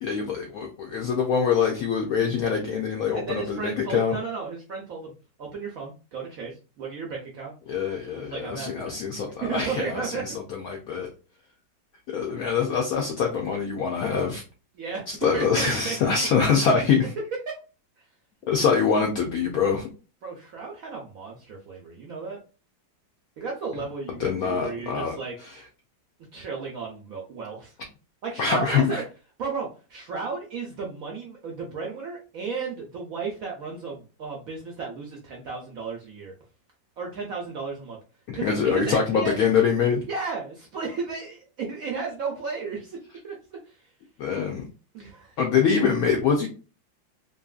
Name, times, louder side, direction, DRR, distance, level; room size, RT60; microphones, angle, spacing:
voice 1, 0.0-4.2 7.7-11.1 12.1-14.4 15.1-17.1 18.5-19.9 24.2-25.2 25.5-25.6 28.4-29.0 38.3-40.1 44.2-44.7 45.4-46.5, left 6 dB, 75° left, 2 dB, 0.8 m, -24 dB
voice 2, 3.1-5.1 5.4-7.5 8.1-9.0 9.4-10.4 14.7-16.4 16.7-16.9 17.5-17.6 20.2-22.4 23.4-25.3 26.3-27.7 28.2-29.0 29.4-36.3 37.0-38.0 38.3-39.4 40.1-43.0 43.2-43.9 44.9-45.4, right 5 dB, 70° right, -1 dB, 0.8 m, -34 dB
2.9 x 2.6 x 2.3 m, 0.34 s
omnidirectional pair, 2.1 m